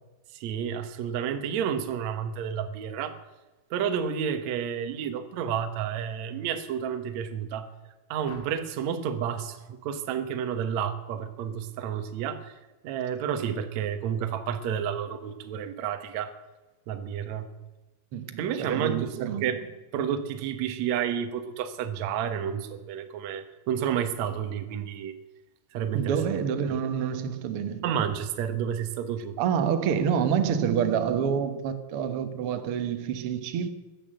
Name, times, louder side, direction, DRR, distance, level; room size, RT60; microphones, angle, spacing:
voice 1, 0.3-3.2 3.7-7.7 8.1-12.5 12.8-16.3 16.9-17.5 18.4-19.7 19.9-25.1 25.7-26.2 26.7-26.8 27.8-29.4, right 8 dB, 65° right, 8 dB, 1.9 m, -30 dB
sound 1, 8.2-8.9 10.6-10.9 11.3-11.6, left 3 dB, 60° left, 3.5 m, -51 dB
voice 2, 18.1-19.5 25.9-27.8 29.4-33.7, right 8 dB, 90° right, 8 dB, 1.2 m, -27 dB
15.5 x 11.0 x 7.7 m, 1.2 s
omnidirectional pair, 4.6 m